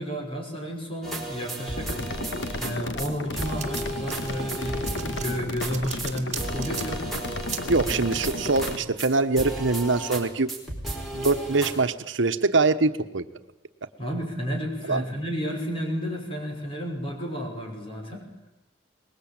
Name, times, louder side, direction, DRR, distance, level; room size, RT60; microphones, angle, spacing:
voice 1, 0.0-2.0 2.6-7.2 14.0-18.3, equal, 30° left, 1 dB, 5.7 m, -32 dB
sound 1, 1.0-2.7 3.0-3.1 3.4-5.7 6.0-6.1 6.4-9.1 9.4-10.2 10.5-11.7, right 1 dB, ahead, 4.6 m, -34 dB
sound 2, 1.8-8.8, left 2 dB, 70° left, 1.5 m, -34 dB
sound 3, 2.8-9.9, right 9 dB, 35° right, 2.2 m, -40 dB
voice 2, 7.7-10.5 11.1-13.2 14.9-15.0, right 3 dB, 80° right, 9 dB, 1.1 m, -23 dB
23.0 x 20.5 x 8.8 m, 0.95 s
head